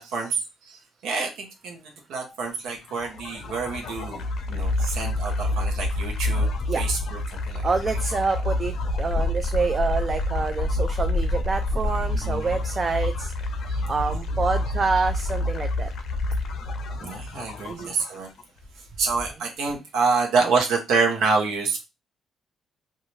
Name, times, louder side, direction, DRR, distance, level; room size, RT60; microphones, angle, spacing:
voice 1, 0.0-6.5 6.7-7.7 12.1-12.5 13.7-13.8 17.0-18.3 18.8-21.9, right 4 dB, 85° right, 2 dB, 0.8 m, -27 dB
sound 1, 2.7-18.4, left 2 dB, 70° left, 0.5 m, -28 dB
voice 2, 7.6-13.3 13.9-15.9 17.7-17.9, right 4 dB, 35° right, 7 dB, 0.3 m, -27 dB
2.5 x 2.3 x 3.0 m, 0.25 s
cardioid pair, 90°, 0 cm